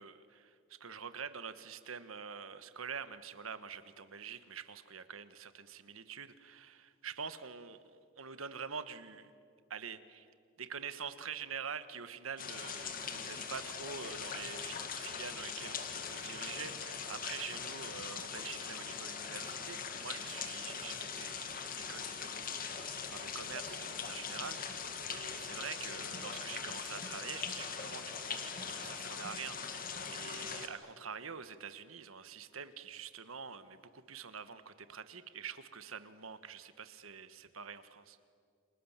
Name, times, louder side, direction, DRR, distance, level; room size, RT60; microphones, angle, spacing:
voice 1, 0.0-9.3 9.7-10.3 10.6-38.2, right 6 dB, 85° right, 12 dB, 1.4 m, -46 dB
sound 1, 12.4-30.7, left 6 dB, 45° left, 2.1 m, -41 dB
30.0 x 26.5 x 7.4 m, 2.3 s
head